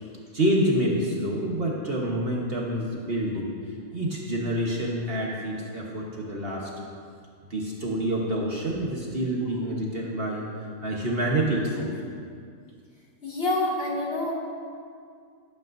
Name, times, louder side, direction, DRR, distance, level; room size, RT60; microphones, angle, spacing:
voice 1, 0.3-3.5 3.9-6.7 7.5-11.9, right 1 dB, 45° right, -3 dB, 1.4 m, -27 dB
voice 2, 13.2-14.3, left 2 dB, 40° left, -6 dB, 2.3 m, -27 dB
17.5 x 8.9 x 2.6 m, 2.2 s
omnidirectional pair, 1.5 m